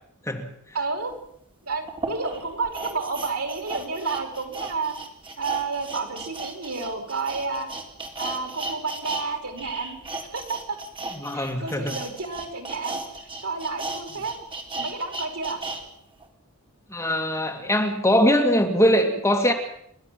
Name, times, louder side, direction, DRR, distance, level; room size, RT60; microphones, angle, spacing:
voice 1, 0.7-1.1 1.7-4.9 5.4-7.7 8.2-10.0 10.3-10.8 11.3-13.0 13.4-14.4 14.8-15.6, right 4 dB, 70° right, 5 dB, 4.6 m, -30 dB
sound 1, 1.1-1.2 1.9-9.2 9.5-15.8 16.2-16.3, right 2 dB, 25° right, 3.8 m, -35 dB
voice 2, 11.2-12.0 16.9-19.5, equal, 10° left, 3 dB, 2.5 m, -22 dB
30.0 x 12.5 x 7.7 m, 0.72 s
head